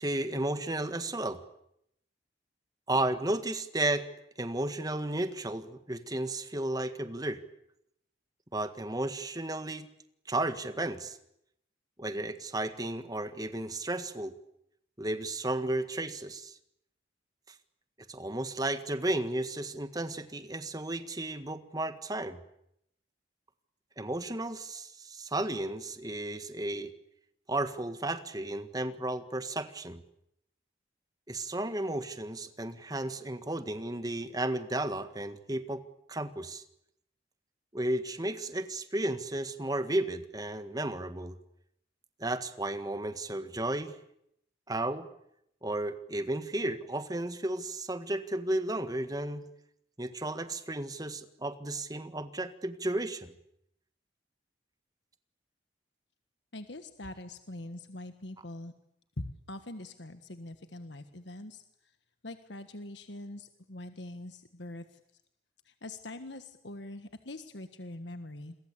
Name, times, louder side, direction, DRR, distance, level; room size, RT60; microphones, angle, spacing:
voice 1, 0.0-1.4 2.9-4.1 4.4-7.4 8.5-9.9 10.3-11.2 12.0-14.3 15.0-16.6 17.5-17.6 18.1-22.4 24.0-26.9 27.5-30.0 31.3-35.8 36.1-36.6 37.7-41.4 42.2-44.0 44.7-45.1 45.6-49.5 50.0-53.3, right 1 dB, 20° right, 10 dB, 1.7 m, -33 dB
voice 2, 56.5-58.7 59.2-61.6 62.2-65.0 65.7-68.5, left 1 dB, 70° left, 9 dB, 1.5 m, -43 dB
28.5 x 23.0 x 8.4 m, 0.76 s
head